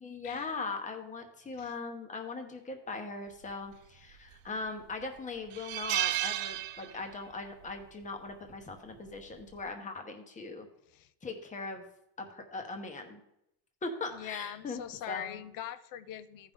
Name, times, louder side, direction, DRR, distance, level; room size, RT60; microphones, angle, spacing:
voice 1, 0.0-10.7 11.2-11.8 12.2-13.2 13.8-14.8 15.1-15.4, left 3 dB, 15° left, 5 dB, 1.1 m, -40 dB
sound 1, 4.1-4.6 5.0-5.1 5.5-7.3 7.6-7.8 9.1-9.4, right 14 dB, 55° right, 0.5 m, -33 dB
voice 2, 14.1-16.5, left 11 dB, 50° left, 15 dB, 0.6 m, -42 dB
14.5 x 5.5 x 3.6 m, 0.81 s
cardioid pair, 140°, 44 cm